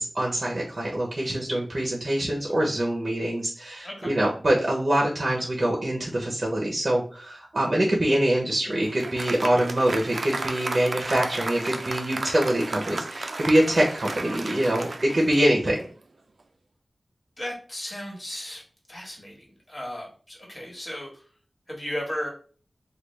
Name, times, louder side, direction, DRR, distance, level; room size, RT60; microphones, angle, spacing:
voice 1, 0.0-15.8, right 1 dB, 50° right, -2 dB, 0.7 m, -24 dB
voice 2, 3.8-4.1 17.4-18.6 18.9-21.3 21.7-22.3, equal, 40° left, -2 dB, 1.4 m, -35 dB
Applause, 8.4-15.9, right 2 dB, 75° right, 0.3 m, -34 dB
3.2 x 2.3 x 3.2 m, 0.42 s
wide cardioid pair, 60°, 0 cm